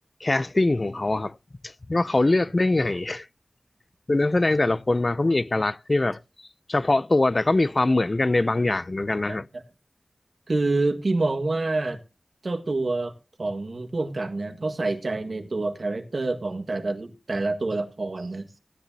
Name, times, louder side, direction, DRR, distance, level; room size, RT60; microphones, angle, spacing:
voice 1, 0.2-1.3 1.9-3.3 4.1-6.2 6.7-9.4, left 2 dB, 45° left, 0.5 m, -22 dB
voice 2, 9.3-9.6 10.5-12.0 12.4-13.1 13.4-18.6, right 2 dB, 70° right, 1.6 m, -27 dB
16.5 x 10.0 x 2.7 m
wide cardioid pair, 60°, 0 cm